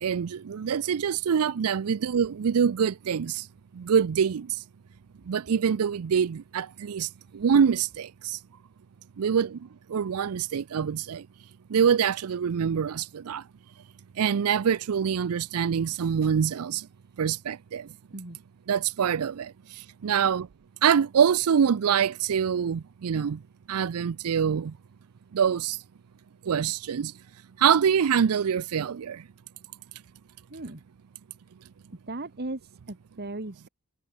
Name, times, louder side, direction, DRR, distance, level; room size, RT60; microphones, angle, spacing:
voice 1, 0.0-3.5 3.7-4.6 5.3-8.4 9.2-9.6 9.9-11.2 11.7-13.4 14.2-16.9 17.2-17.9 18.7-19.5 20.0-20.5 20.8-23.4 23.7-24.7 25.3-25.8 26.4-27.1 27.6-29.2, right 7 dB, 85° right, 0.5 m, -25 dB
voice 2, 30.5-30.8 32.1-33.7, right 2 dB, 50° right, 1.9 m, -37 dB
head